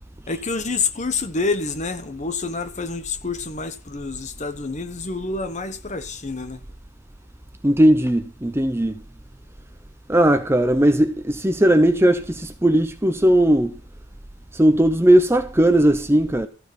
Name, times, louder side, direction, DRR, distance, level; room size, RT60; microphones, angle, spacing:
voice 1, 0.3-6.6, left 4 dB, 30° left, 0.9 m, -27 dB
voice 2, 7.6-9.0 10.1-13.7 14.5-16.5, right 1 dB, 10° right, 0.7 m, -17 dB
14.0 x 6.6 x 5.3 m
head